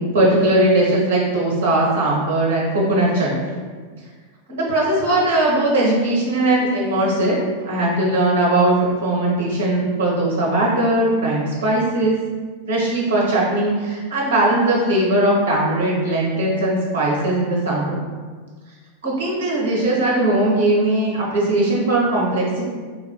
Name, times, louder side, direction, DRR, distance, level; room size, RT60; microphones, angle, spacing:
voice 1, 0.1-3.4 4.5-7.3 7.6-12.1 12.7-18.0 19.0-22.7, right 1 dB, 60° right, -4 dB, 0.9 m, -19 dB
3.8 x 2.5 x 2.2 m, 1.5 s
figure-of-eight pair, 90°, 0 cm